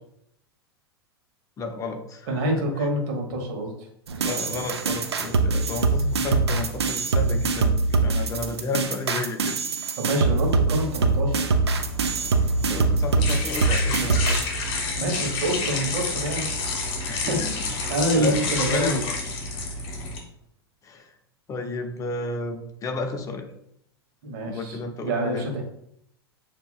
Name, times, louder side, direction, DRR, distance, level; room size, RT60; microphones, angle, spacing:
voice 1, 1.6-2.3 4.2-7.7 8.0-9.6 12.6-14.4 17.0-18.4 18.7-19.0 20.8-21.1 21.5-23.5 24.5-25.5, left 3 dB, 25° left, 5 dB, 0.7 m, -32 dB
voice 2, 2.3-3.7 10.0-11.5 15.0-16.7 17.0-19.0 19.4-19.8 24.2-25.6, right 1 dB, 50° right, 2 dB, 1.4 m, -27 dB
sound 1, 4.1-14.4, right 3 dB, 80° right, 0.5 m, -23 dB
sound 2, 11.6-20.2, left 3 dB, 40° left, 1.5 m, -29 dB
6.9 x 2.9 x 2.3 m, 0.73 s
figure-of-eight pair, 95°, 14 cm